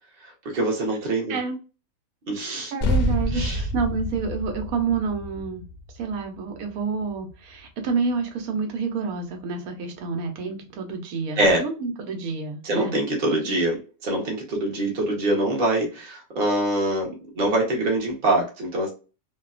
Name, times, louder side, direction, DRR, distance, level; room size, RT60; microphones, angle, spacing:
voice 1, 0.2-1.4 2.3-2.7 3.3-3.7 11.4-11.6 12.6-18.9, right 1 dB, 45° right, 0.9 m, -24 dB
voice 2, 2.4-5.6 6.0-12.9 13.4-13.5, right 4 dB, 85° right, 1.2 m, -29 dB
sound 1, 2.8-7.6, equal, 60° left, 0.6 m, -28 dB
2.7 x 2.2 x 2.3 m
omnidirectional pair, 1.5 m